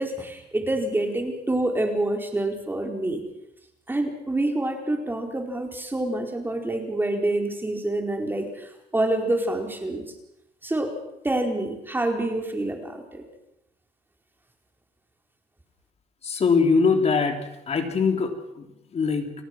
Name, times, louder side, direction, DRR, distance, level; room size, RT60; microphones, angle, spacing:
voice 1, 0.0-3.2 3.9-10.0 10.6-10.9 11.2-13.2, right 1 dB, 10° right, 3 dB, 4.5 m, -27 dB
voice 2, 16.2-19.3, left 5 dB, 40° left, 5 dB, 3.6 m, -23 dB
30.0 x 18.5 x 6.1 m, 0.87 s
cardioid pair, 110°, 17 cm